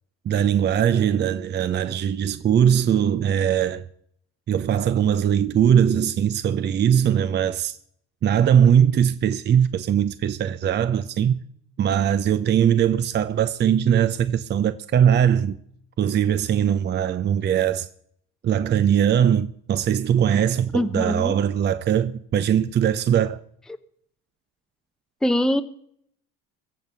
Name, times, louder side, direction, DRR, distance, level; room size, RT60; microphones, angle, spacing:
voice 1, 0.3-3.8 4.5-7.8 8.2-11.4 11.8-15.6 16.0-17.9 18.4-23.4, right 9 dB, 35° right, 0.7 m, -20 dB
voice 2, 20.7-21.4 25.2-25.6, left 1 dB, ahead, 0.8 m, -22 dB
22.0 x 7.4 x 5.5 m
cardioid pair, 110°, 31 cm